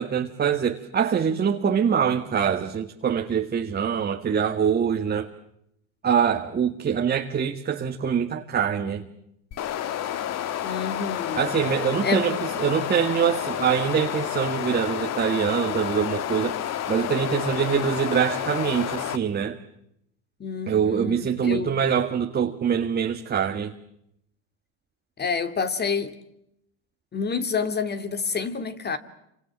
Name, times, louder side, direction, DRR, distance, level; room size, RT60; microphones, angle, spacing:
voice 1, 0.0-5.3 6.0-9.0 11.3-16.6 16.9-19.6 20.7-23.7, right 7 dB, 25° right, 1.9 m, -24 dB
sound 1, 9.5-19.2, left 10 dB, 40° left, 1.8 m, -30 dB
voice 2, 10.6-11.4 12.0-12.2 20.4-21.7 25.2-26.2 27.1-29.0, left 5 dB, 25° left, 2.8 m, -28 dB
29.5 x 26.0 x 7.5 m
supercardioid pair, 110°, 39 cm